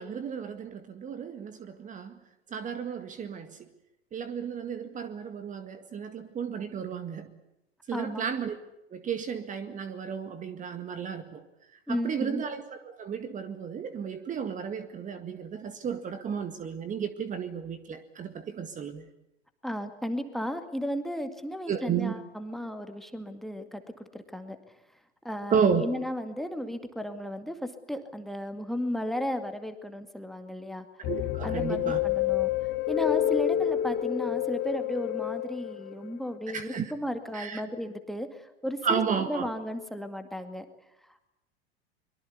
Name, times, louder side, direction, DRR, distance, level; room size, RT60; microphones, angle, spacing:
voice 1, 0.0-2.2 2.5-3.6 4.1-7.3 7.9-8.6 8.9-11.4 11.9-19.1 21.7-22.1 25.5-25.8 31.0-32.0 36.5-36.9 37.3-37.6 38.8-39.5, right 7 dB, 25° right, 10 dB, 1.9 m, -33 dB
voice 2, 7.9-8.2 11.9-12.4 19.6-23.8 24.1-24.6 25.2-30.9 31.4-32.5 32.9-38.3 38.6-39.0 39.3-40.7, equal, ahead, 9 dB, 2.1 m, -34 dB
sound 1, 31.0-36.1, left 12 dB, 35° left, 1.7 m, -28 dB
24.0 x 23.0 x 8.4 m, 0.86 s
figure-of-eight pair, 85°, 32 cm